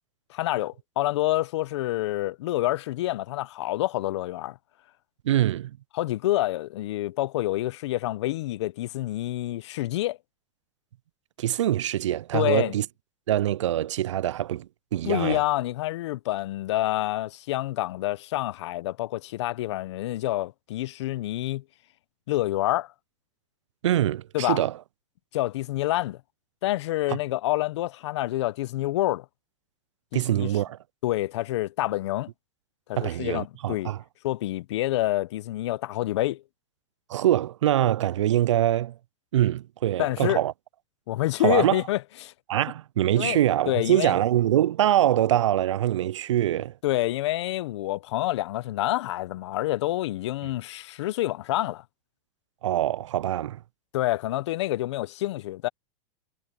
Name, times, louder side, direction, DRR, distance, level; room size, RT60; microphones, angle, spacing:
voice 1, 0.3-4.6 5.9-10.2 12.3-12.7 15.0-21.6 22.3-22.9 24.3-24.6 25.3-26.2 26.6-29.2 30.1-30.5 31.0-32.3 32.9-33.9 34.2-36.4 40.0-40.4 41.1-42.3 43.1-43.4 43.7-44.1 46.8-51.8 53.9-55.7, left 16 dB, 70° left, 1.0 m, -27 dB
voice 2, 5.2-5.8 11.4-12.9 13.3-15.4 23.8-24.7 30.1-30.8 33.0-34.0 37.1-38.9 39.3-40.5 41.4-41.8 42.5-46.7 52.6-53.6, right 12 dB, 90° right, 0.4 m, -24 dB
hypercardioid pair, 115°, 15 cm